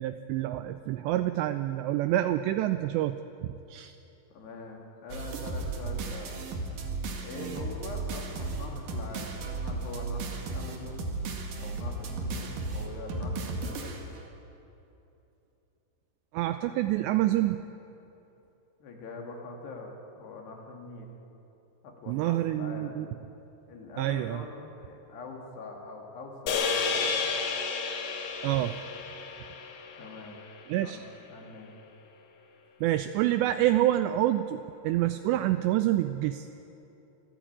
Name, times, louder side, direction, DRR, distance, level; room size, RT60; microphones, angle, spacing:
voice 1, 0.0-3.2 3.4-3.9 16.3-17.6 22.1-23.1 24.0-24.4 28.4-28.8 30.7-31.0 32.8-36.5, right 14 dB, 85° right, 10 dB, 2.5 m, -27 dB
voice 2, 4.3-6.4 7.2-11.2 11.6-14.0 18.8-21.1 21.8-23.1 23.7-27.2 30.0-30.4 30.8-31.7, left 3 dB, 60° left, 1 dB, 4.3 m, -43 dB
sound 1, 5.1-14.2, right 3 dB, 55° right, 3.1 m, -35 dB
sound 2, 26.5-30.9, left 5 dB, 75° left, 4.5 m, -32 dB
25.0 x 15.0 x 8.9 m, 2.9 s
omnidirectional pair, 5.6 m